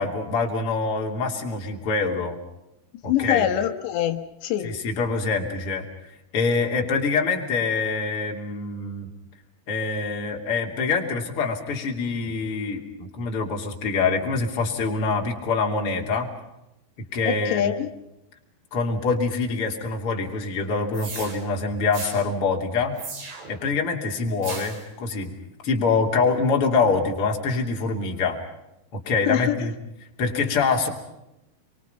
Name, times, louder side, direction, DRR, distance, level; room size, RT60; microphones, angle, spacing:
voice 1, 0.0-2.4 3.0-3.5 4.6-5.9 6.3-9.1 9.7-16.3 17.1-17.7 18.7-23.0 23.5-25.3 25.6-28.4 28.9-29.7 30.2-30.9, left 4 dB, 35° left, 1 dB, 3.5 m, -25 dB
voice 2, 3.1-4.7 17.3-17.9 29.3-29.6, left 11 dB, 85° left, 7 dB, 3.6 m, -24 dB
sound 1, 20.9-21.3 21.9-22.2 23.0-23.6 24.4-24.8, right 4 dB, 85° right, 7.2 m, -36 dB
28.5 x 23.5 x 5.7 m, 0.89 s
omnidirectional pair, 4.9 m